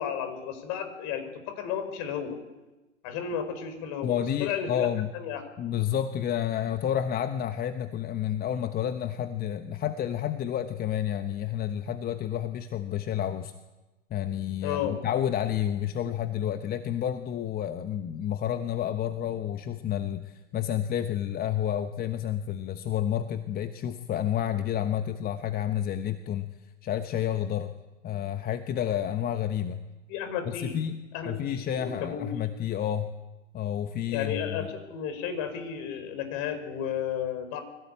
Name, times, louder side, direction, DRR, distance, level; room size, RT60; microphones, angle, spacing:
voice 1, 0.0-2.4 3.0-4.1 4.4-4.9 5.1-5.4 14.6-15.0 30.1-30.8 31.1-32.3 34.1-37.6, left 8 dB, 45° left, 8 dB, 5.3 m, -33 dB
voice 2, 4.0-5.1 5.6-13.5 14.1-26.5 26.8-27.7 28.0-29.8 30.6-31.0 31.2-33.1 33.5-34.7, left 10 dB, 25° left, 9 dB, 1.1 m, -30 dB
24.0 x 17.5 x 8.5 m, 1.1 s
hypercardioid pair, 105°, 38 cm